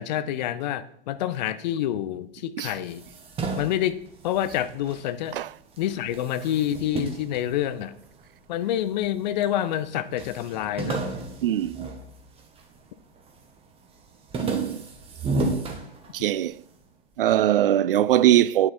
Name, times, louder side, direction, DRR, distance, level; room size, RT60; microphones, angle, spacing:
voice 1, 0.0-3.0 3.6-5.4 5.8-7.9 8.5-11.0, left 11 dB, 45° left, 0.8 m, -27 dB
sound 1, 2.8-5.4 5.7-8.3 8.9-9.5 9.8-9.9 10.2-12.8 13.2-13.6 13.9-16.5, right 3 dB, 20° right, 1.6 m, -33 dB
voice 2, 11.4-11.9 14.4-14.8 16.1-16.6 17.2-18.7, right 12 dB, 60° right, 0.4 m, -21 dB
9.7 x 8.9 x 4.2 m
figure-of-eight pair, 105°, 31 cm